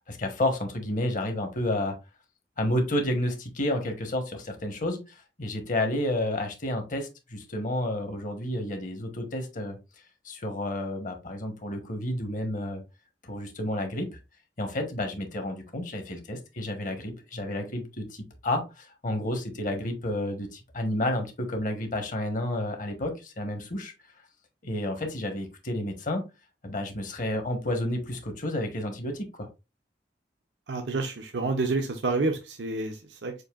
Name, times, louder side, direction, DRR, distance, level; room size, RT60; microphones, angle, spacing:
voice 1, 0.1-1.9 2.6-5.0 5.4-9.8 10.2-12.8 13.2-14.1 14.6-23.9 24.6-26.2 26.6-29.5, left 1 dB, 50° left, 5 dB, 1.1 m, -30 dB
voice 2, 30.7-33.4, right 3 dB, 80° right, 4 dB, 0.7 m, -29 dB
6.4 x 2.6 x 2.4 m, 0.27 s
head